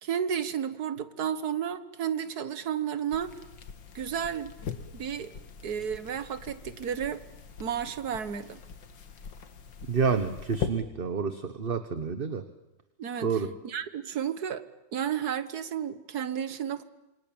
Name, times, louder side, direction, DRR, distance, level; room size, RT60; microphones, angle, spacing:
voice 1, 0.0-3.3 4.0-4.6 4.9-5.3 5.6-7.2 7.6-8.6 13.0-13.3 13.6-14.6 14.9-16.8, right 8 dB, 60° right, 12 dB, 1.8 m, -32 dB
sound 1, 3.1-10.7, left 7 dB, 85° left, 2.3 m, -41 dB
voice 2, 9.8-12.4 13.2-13.5, right 5 dB, 35° right, 9 dB, 1.2 m, -29 dB
27.5 x 24.0 x 8.8 m, 0.98 s
omnidirectional pair, 1.9 m